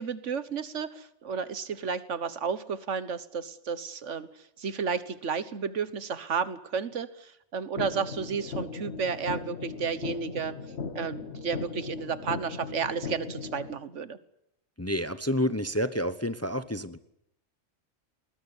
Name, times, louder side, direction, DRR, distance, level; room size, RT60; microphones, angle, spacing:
voice 1, 0.0-10.5 10.9-14.2, right 6 dB, 70° right, 14 dB, 1.5 m, -32 dB
sound 1, 7.8-13.8, left 4 dB, 60° left, 1.7 m, -37 dB
voice 2, 14.8-17.0, equal, 15° left, 12 dB, 0.8 m, -29 dB
21.0 x 19.5 x 9.8 m, 0.78 s
omnidirectional pair, 1.3 m